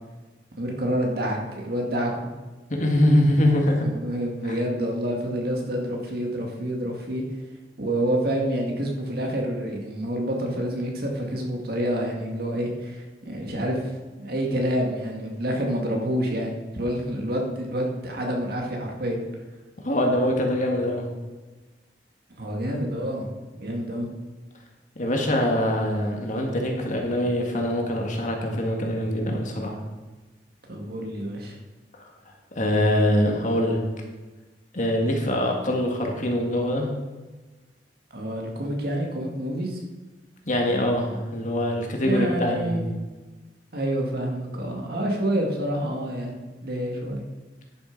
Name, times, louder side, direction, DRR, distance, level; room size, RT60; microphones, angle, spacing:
voice 1, 0.6-2.1 3.8-7.2 7.8-13.9 14.2-19.2 22.4-23.3 23.5-24.1 30.7-31.6 38.1-39.8 42.0-43.1 43.7-46.3 46.6-47.2, equal, 60° right, 0 dB, 2.0 m, -28 dB
voice 2, 2.7-3.8 4.4-4.6 19.8-21.1 25.0-29.8 32.6-33.8 34.7-36.9 40.5-42.9, left 1 dB, 45° left, 1 dB, 1.8 m, -23 dB
11.0 x 6.9 x 5.2 m, 1.2 s
head